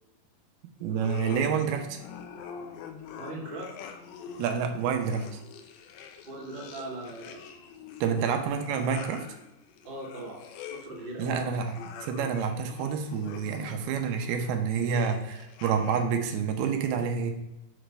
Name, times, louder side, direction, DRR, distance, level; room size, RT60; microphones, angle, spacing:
voice 1, 0.8-2.0 4.4-5.4 8.0-9.3 11.2-11.8 12.0-17.3, right 6 dB, 90° right, 5 dB, 2.6 m, -28 dB
sound 1, 0.9-16.3, left 7 dB, 85° left, 2.6 m, -45 dB
voice 2, 3.2-3.7 6.2-7.4 9.8-10.4 10.7-11.5 11.8-11.9, right 1 dB, 55° right, -5 dB, 0.6 m, -39 dB
7.1 x 5.0 x 3.3 m, 0.93 s
omnidirectional pair, 4.4 m